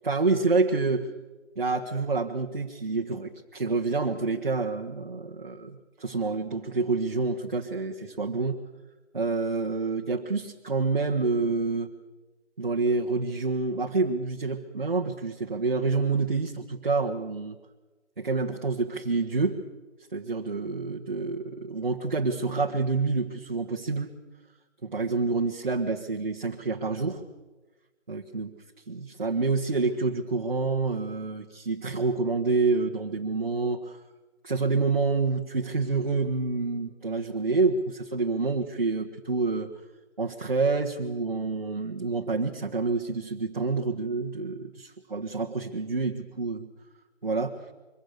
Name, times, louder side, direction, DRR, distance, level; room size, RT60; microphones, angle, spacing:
voice 1, 0.0-1.1 1.5-8.6 9.1-11.9 12.6-17.6 18.2-19.6 20.1-24.1 24.8-27.2 28.1-28.5 28.9-34.0 34.4-39.7 40.2-46.7 47.2-47.6, right 3 dB, 45° right, 0 dB, 1.5 m, -28 dB
25.0 x 23.0 x 6.7 m, 1.2 s
figure-of-eight pair, 180°, 35 cm